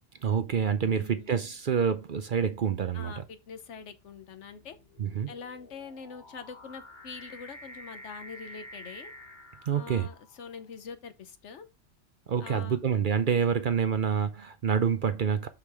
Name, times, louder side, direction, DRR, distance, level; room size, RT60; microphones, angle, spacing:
voice 1, 0.2-3.2 5.0-5.3 9.7-10.1 12.3-15.5, right 7 dB, 50° right, 0.7 m, -27 dB
voice 2, 0.8-1.3 2.9-4.8 5.3-9.1 9.7-11.7 12.4-12.8 13.3-13.5, left 5 dB, 75° left, 1.2 m, -44 dB
sound 1, 1.3-1.6 2.4-10.6, left 1 dB, 40° left, 1.3 m, -50 dB
6.5 x 5.7 x 3.5 m
omnidirectional pair, 1.3 m